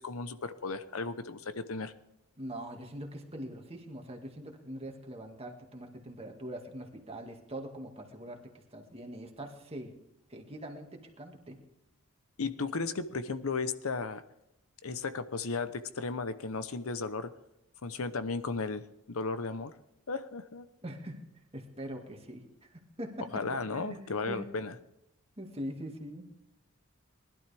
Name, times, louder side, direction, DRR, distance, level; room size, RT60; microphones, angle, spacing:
voice 1, 0.0-1.9 12.4-14.2 14.8-17.3 17.8-19.7 20.1-20.7 23.3-24.7, left 4 dB, 75° left, 12 dB, 0.8 m, -35 dB
voice 2, 2.4-9.9 10.3-11.6 20.8-21.3 21.5-23.4 23.7-24.5 25.4-26.3, right 1 dB, 25° right, 2 dB, 2.0 m, -43 dB
20.0 x 12.0 x 3.5 m, 0.86 s
head